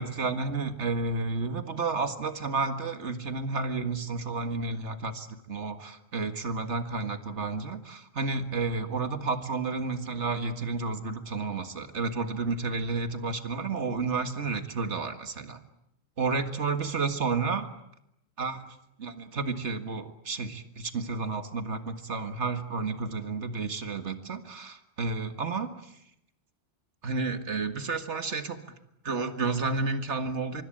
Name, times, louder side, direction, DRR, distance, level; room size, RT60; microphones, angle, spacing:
voice 1, 0.0-15.6 16.2-17.7 18.4-18.6 19.0-25.7 27.0-28.6 29.1-30.6, right 4 dB, 75° right, 8 dB, 2.1 m, -31 dB
25.0 x 24.0 x 8.9 m, 0.81 s
omnidirectional pair, 1.2 m